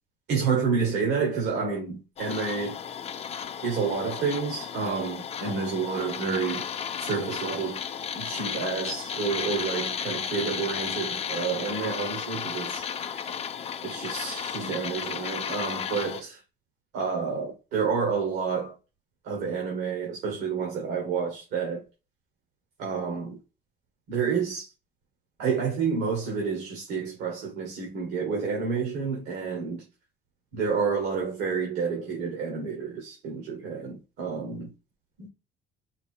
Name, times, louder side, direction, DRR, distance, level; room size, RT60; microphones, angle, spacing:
voice 1, 0.3-2.8 3.6-6.7 7.0-7.8 8.1-13.2 13.8-16.4 16.9-18.7 19.2-21.8 22.8-23.4 24.1-24.7 25.4-29.9 30.5-34.7 35.2-35.3, right 5 dB, 85° right, 1.5 m, -29 dB
sound 1, 2.2-16.2, left 7 dB, 40° left, 0.5 m, -34 dB
4.8 x 2.6 x 3.7 m
cardioid pair, 110°, 17 cm